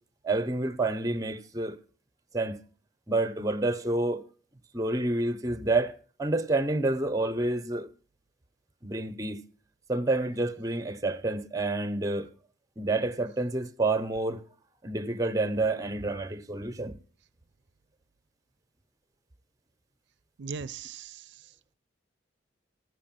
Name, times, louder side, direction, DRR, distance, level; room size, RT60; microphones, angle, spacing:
voice 1, 0.2-1.8 2.3-2.6 3.1-4.2 4.7-7.9 8.8-9.4 9.9-12.3 12.8-14.4 14.8-17.0, right 2 dB, 20° right, 0.8 m, -28 dB
voice 2, 20.4-21.7, right 5 dB, 65° right, 0.5 m, -40 dB
14.0 x 6.4 x 7.4 m
head